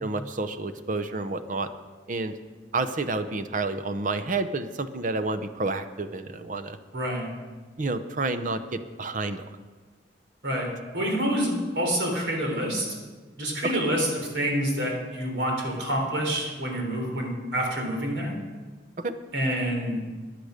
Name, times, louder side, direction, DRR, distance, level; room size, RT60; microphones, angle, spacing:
voice 1, 0.0-1.7 2.1-2.4 2.7-6.8 7.8-9.4 13.6-13.8 19.0-19.1, right 3 dB, 45° right, 11 dB, 0.7 m, -29 dB
voice 2, 6.9-7.3 10.4-10.7 10.9-12.9 13.4-14.1 14.3-18.3 19.3-20.0, equal, 85° right, 0 dB, 3.7 m, -27 dB
14.5 x 10.0 x 5.1 m, 1.4 s
head